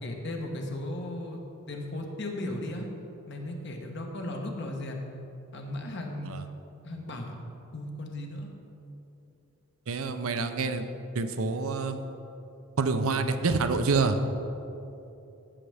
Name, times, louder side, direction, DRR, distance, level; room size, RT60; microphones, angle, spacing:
voice 1, 0.0-1.4 1.7-2.9 3.3-5.1 5.5-6.3 6.8-7.4 7.7-8.5, left 1 dB, 50° left, 2 dB, 1.0 m, -36 dB
voice 2, 9.9-10.9 11.1-12.0 12.8-14.2, right 4 dB, 70° right, 8 dB, 0.6 m, -27 dB
15.0 x 6.4 x 3.4 m, 2.9 s
head